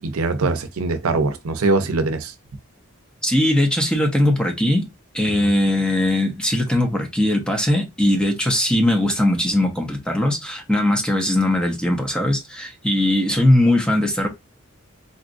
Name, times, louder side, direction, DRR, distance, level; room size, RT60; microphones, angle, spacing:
voice 1, 0.0-2.3 5.4-5.5, right 3 dB, 80° right, 0.6 m, -22 dB
voice 2, 3.2-4.9 5.1-14.3, left 1 dB, 5° left, 0.7 m, -20 dB
4.0 x 2.4 x 2.5 m
head